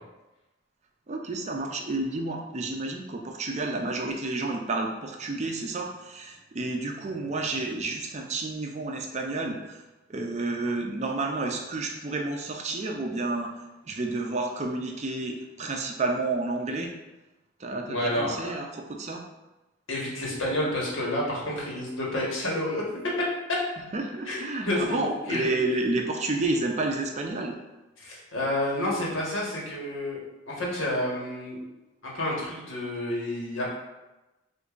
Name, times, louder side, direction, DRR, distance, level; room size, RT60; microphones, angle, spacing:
voice 1, 1.1-9.8 10.1-13.5 13.8-16.9 17.6-19.2 23.9-27.6, right 2 dB, 35° right, 2 dB, 0.5 m, -30 dB
voice 2, 17.9-18.6 19.9-23.0 24.2-25.5 28.0-30.2 30.5-31.6 32.0-33.7, left 1 dB, 85° left, -4 dB, 1.3 m, -30 dB
6.7 x 2.6 x 2.5 m, 1.0 s
head